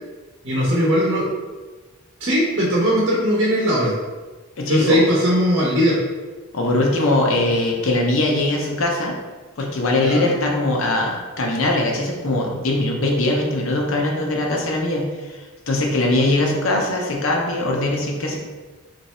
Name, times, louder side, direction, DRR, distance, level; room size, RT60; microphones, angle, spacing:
voice 1, 0.4-1.3 2.2-3.9 4.7-6.0 10.0-10.3, equal, 60° right, -6 dB, 0.8 m, -19 dB
voice 2, 4.6-5.0 6.5-9.2 9.6-18.4, left 2 dB, 75° left, 0 dB, 0.7 m, -21 dB
3.1 x 2.6 x 4.2 m, 1.3 s
head